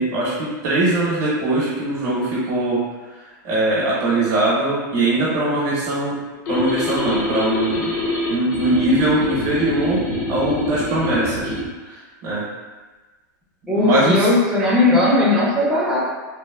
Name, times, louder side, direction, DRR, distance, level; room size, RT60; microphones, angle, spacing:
voice 1, 0.0-2.8 3.2-6.2 6.5-8.0 8.3-10.0 10.3-11.5 11.8-12.4 13.7-14.3, right 2 dB, 40° right, -7 dB, 0.8 m, -21 dB
sound 1, 6.5-11.7, left 1 dB, 80° left, 0.7 m, -25 dB
voice 2, 13.7-16.1, left 2 dB, 5° right, -8 dB, 0.4 m, -17 dB
3.0 x 2.0 x 2.3 m, 1.2 s
supercardioid pair, 145°, 11 cm